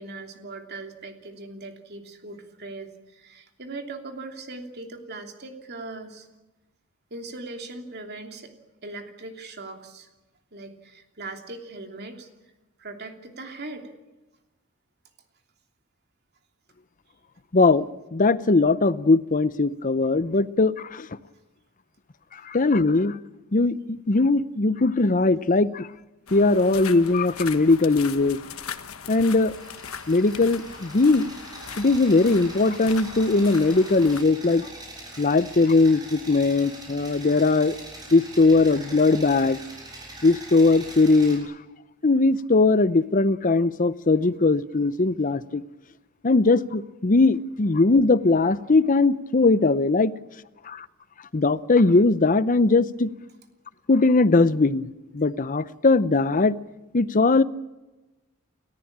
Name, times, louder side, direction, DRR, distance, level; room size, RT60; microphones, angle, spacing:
voice 1, 0.0-6.3 7.1-8.5 8.8-10.1 10.5-12.3 12.8-13.9, right 2 dB, 50° right, 4 dB, 3.0 m, -39 dB
voice 2, 17.5-21.1 22.4-23.2 23.5-25.9 26.3-28.4 29.1-29.5 30.1-31.3 31.8-34.7 35.2-37.8 38.1-39.6 40.2-41.5 42.0-45.6 46.2-50.1 50.7-50.9 51.3-53.1 53.9-54.9 55.1-56.6 56.9-57.4, left 3 dB, 40° left, 16 dB, 0.7 m, -20 dB
sound 1, 26.3-34.2, left 7 dB, 85° left, 1.3 m, -39 dB
sound 2, 29.1-41.4, right 2 dB, 20° right, 6.9 m, -43 dB
30.0 x 14.0 x 8.7 m, 1.1 s
head